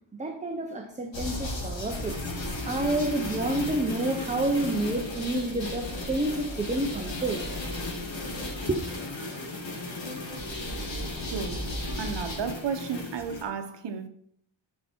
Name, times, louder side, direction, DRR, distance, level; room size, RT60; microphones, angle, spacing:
voice 1, 0.1-2.2 2.6-7.4 8.7-8.8, right 1 dB, 15° right, 0.7 m, -29 dB
sound 1, 1.1-13.4, left 2 dB, 65° left, 2.5 m, -35 dB
voice 2, 11.2-11.7 12.0-14.1, right 6 dB, 60° right, 1.0 m, -33 dB
11.5 x 5.5 x 4.5 m
wide cardioid pair, 175°, 48 cm